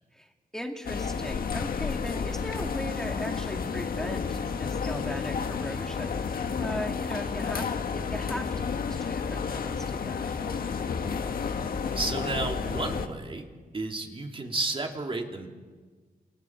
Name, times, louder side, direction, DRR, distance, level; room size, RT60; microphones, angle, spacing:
voice 1, 0.1-10.3, equal, 5° left, 2 dB, 2.2 m, -38 dB
sound 1, 0.8-13.1, left 6 dB, 70° left, 1.7 m, -31 dB
voice 2, 11.9-13.5 13.7-15.5, right 3 dB, 35° right, 3 dB, 2.8 m, -32 dB
28.5 x 28.5 x 4.6 m, 1.4 s
wide cardioid pair, 100°, 16 cm